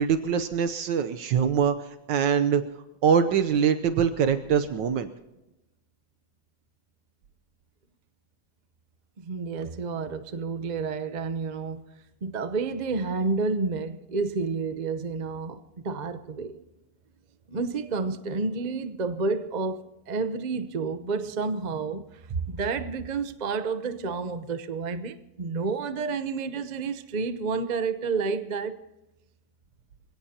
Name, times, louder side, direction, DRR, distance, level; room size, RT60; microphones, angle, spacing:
voice 1, 0.0-2.6 3.0-5.1, right 7 dB, 75° right, 1.5 m, -23 dB
voice 2, 9.3-11.8 12.2-16.6 17.5-22.0 22.3-28.8, right 4 dB, 45° right, 0.5 m, -30 dB
26.5 x 17.0 x 2.9 m
omnidirectional pair, 2.0 m